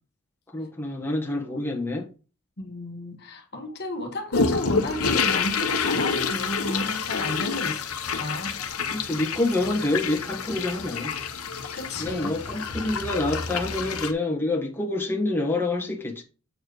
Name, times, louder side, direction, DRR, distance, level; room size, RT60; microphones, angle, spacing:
voice 1, 0.5-2.1 8.9-11.1 12.0-16.2, left 2 dB, 10° left, 1.6 m, -27 dB
voice 2, 2.6-7.9 8.1-8.5 11.7-12.3, left 1 dB, 50° left, 1.4 m, -32 dB
sound 1, 4.3-14.1, left 5 dB, 75° left, 1.0 m, -28 dB
8.0 x 4.5 x 4.8 m
head